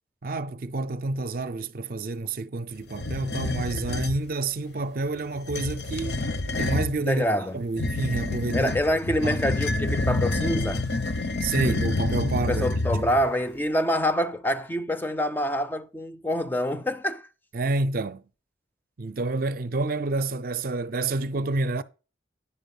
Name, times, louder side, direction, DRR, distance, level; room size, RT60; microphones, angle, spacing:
voice 1, 0.2-6.2 6.6-7.2 7.5-8.7 9.2-9.4 11.4-12.7 12.9-13.1 17.5-18.2 19.0-21.8, right 3 dB, 50° right, 0.5 m, -29 dB
sound 1, 2.9-4.2 5.4-7.0 7.8-13.3, left 2 dB, 65° left, 0.8 m, -28 dB
voice 2, 7.1-7.6 8.5-10.9 12.5-17.3, equal, 10° left, 0.4 m, -26 dB
9.9 x 4.6 x 5.3 m
head